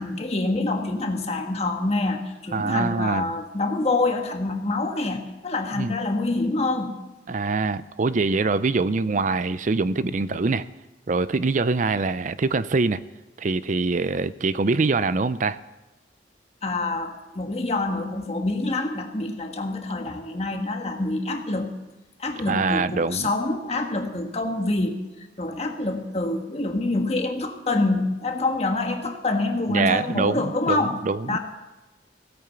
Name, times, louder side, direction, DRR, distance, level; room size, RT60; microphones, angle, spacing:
voice 1, 0.0-7.0 16.6-21.7 22.2-31.0 31.3-31.4, left 2 dB, 35° left, 4 dB, 1.5 m, -26 dB
voice 2, 2.5-3.3 5.8-5.9 7.3-10.7 11.1-13.0 13.4-15.6 22.5-23.3 29.7-31.4, right 3 dB, 45° right, 16 dB, 0.5 m, -24 dB
16.5 x 8.9 x 6.9 m, 1.0 s
head